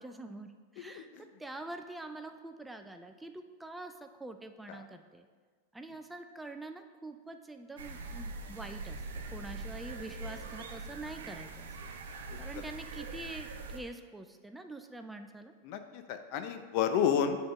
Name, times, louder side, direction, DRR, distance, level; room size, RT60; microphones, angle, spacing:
voice 1, 0.0-5.3 5.7-9.0 9.3-11.8 12.4-15.5, right 2 dB, 5° right, 7 dB, 0.4 m, -45 dB
voice 2, 0.8-1.2 4.7-4.8 15.6-17.4, left 8 dB, 55° left, 8 dB, 0.6 m, -31 dB
sound 1, 7.8-13.8, right 3 dB, 85° right, 0.7 m, -43 dB
7.8 x 3.6 x 5.2 m, 1.5 s
hypercardioid pair, 125°, 0 cm